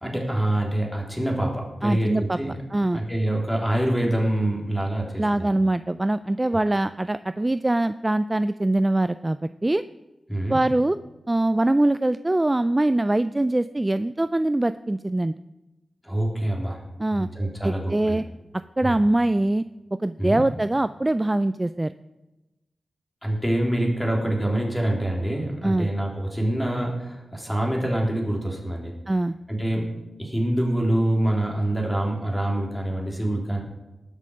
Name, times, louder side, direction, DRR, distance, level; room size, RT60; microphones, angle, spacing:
voice 1, 0.0-2.6 2.9-5.5 10.3-10.6 16.0-16.8 17.1-18.2 18.8-19.0 20.2-20.4 23.2-28.9 29.5-29.9 30.2-33.6, right 1 dB, 5° left, -1 dB, 3.3 m, -25 dB
voice 2, 1.8-2.4 2.7-3.0 5.2-9.8 10.5-11.0 11.3-15.3 17.0-17.3 17.6-18.2 18.8-19.6 20.0-21.9 25.6-25.9 29.1-29.3, right 1 dB, 20° right, 13 dB, 0.3 m, -23 dB
19.0 x 6.4 x 5.3 m, 1.0 s
cardioid pair, 70°, 0 cm